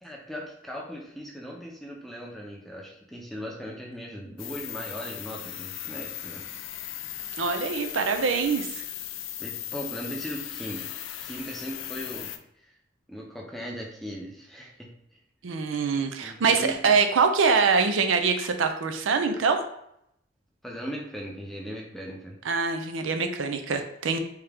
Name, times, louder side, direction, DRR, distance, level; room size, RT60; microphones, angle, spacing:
voice 1, 0.0-6.4 9.4-12.3 12.6-12.7 13.1-14.9 16.2-17.0 20.6-22.4, equal, ahead, -2 dB, 0.6 m, -38 dB
sound 1, 4.4-12.4, left 11 dB, 80° left, 0.4 m, -37 dB
voice 2, 7.4-8.8 15.4-19.6 22.5-24.2, right 5 dB, 85° right, 6 dB, 0.5 m, -24 dB
3.5 x 2.8 x 3.4 m, 0.76 s
head